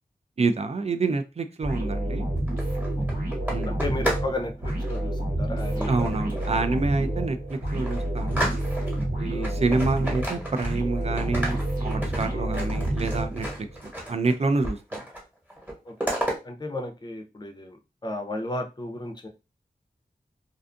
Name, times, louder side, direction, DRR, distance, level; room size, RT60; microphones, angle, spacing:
voice 1, 0.4-2.3 3.5-3.7 5.9-8.5 9.2-13.5 13.8-15.0, right 3 dB, 40° right, 8 dB, 0.4 m, -27 dB
sound 1, 1.6-13.8, right 1 dB, 65° right, 1.0 m, -29 dB
sound 2, 2.4-4.3 4.6-5.0 5.8-6.6 7.1-7.2 7.5-9.0 9.4-10.9 11.2-14.3 14.6-15.2 15.5-16.4, equal, 10° right, 1.1 m, -33 dB
voice 2, 3.6-6.4 9.3-9.6 12.3-12.5 15.9-16.0 16.4-17.8 18.0-19.3, left 2 dB, 25° left, 3 dB, 0.6 m, -34 dB
2.5 x 2.3 x 2.5 m, 0.28 s
wide cardioid pair, 70°, 16 cm